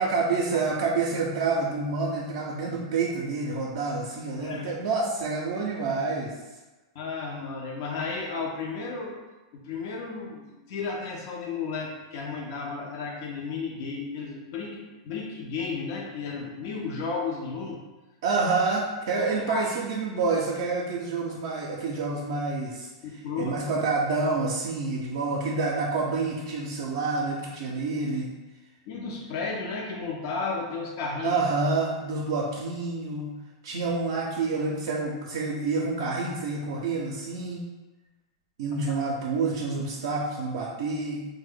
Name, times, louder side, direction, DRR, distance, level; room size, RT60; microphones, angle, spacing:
voice 1, 0.0-6.3 18.2-22.9 23.4-28.3 31.2-33.4 33.6-37.7 38.6-41.3, right 3 dB, 70° right, -3 dB, 0.4 m, -28 dB
voice 2, 4.4-4.7 6.9-9.2 9.5-17.8 19.5-19.7 23.0-23.5 28.9-31.4, left 4 dB, 60° left, -1 dB, 0.5 m, -33 dB
2.6 x 2.1 x 3.4 m, 1.1 s
hypercardioid pair, 110°, 2 cm